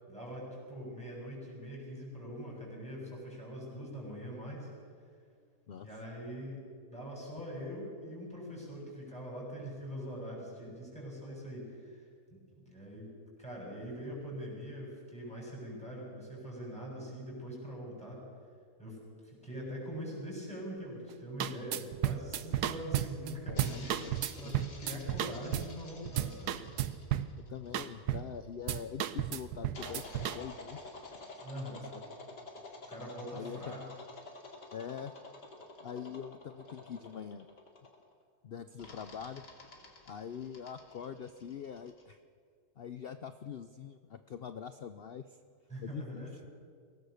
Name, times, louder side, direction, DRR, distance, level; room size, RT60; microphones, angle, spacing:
voice 1, 0.1-4.7 5.8-6.6 6.9-12.4 12.6-13.1 13.4-18.2 18.8-24.0 24.3-26.7 31.4-32.0 32.9-33.8 45.7-46.4, equal, 5° left, -4 dB, 7.3 m, -43 dB
sound 1, 21.1-21.2 21.4-25.8 26.1-27.4 27.7-28.4 28.7-30.4, right 11 dB, 75° right, 1.3 m, -33 dB
sound 2, 23.5-28.4 29.7-38.1 38.8-42.0, left 2 dB, 85° left, 3.1 m, -50 dB
voice 2, 23.5-24.6 27.4-30.8 31.7-31.8 33.3-33.8 34.7-35.1 35.8-37.5 38.4-39.5 40.1-42.2 42.8-45.4 45.8-46.4, left 7 dB, 65° left, 11 dB, 0.5 m, -44 dB
23.0 x 18.5 x 6.6 m, 2.1 s
omnidirectional pair, 1.8 m